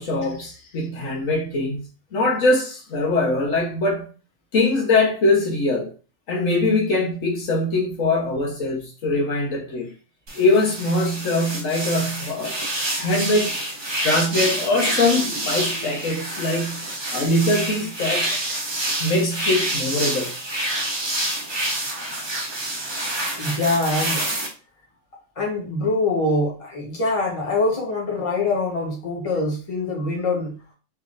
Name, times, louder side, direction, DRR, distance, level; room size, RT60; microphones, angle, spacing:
voice 1, 0.0-4.1 4.5-5.9 6.3-9.9 10.3-12.6 12.9-13.5 14.0-18.6 19.0-20.3, left 2 dB, 80° left, 1.5 m, -22 dB
sound 1, 10.3-24.5, right 1 dB, 25° right, 0.7 m, -27 dB
voice 2, 23.4-24.3 25.4-30.6, left 2 dB, 30° left, 1.1 m, -24 dB
3.4 x 3.4 x 2.5 m
omnidirectional pair, 1.4 m